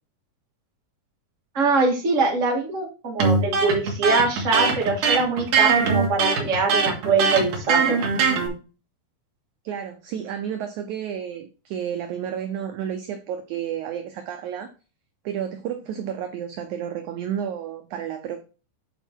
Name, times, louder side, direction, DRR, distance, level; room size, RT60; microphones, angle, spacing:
voice 1, 1.5-7.9, right 4 dB, 30° right, -1 dB, 1.6 m, -23 dB
Electric guitar, 3.2-8.5, right 5 dB, 60° right, 2.9 m, -21 dB
voice 2, 9.6-14.7 15.3-18.4, right 9 dB, 80° right, 6 dB, 1.8 m, -31 dB
9.1 x 4.4 x 4.5 m, 0.34 s
omnidirectional pair, 4.3 m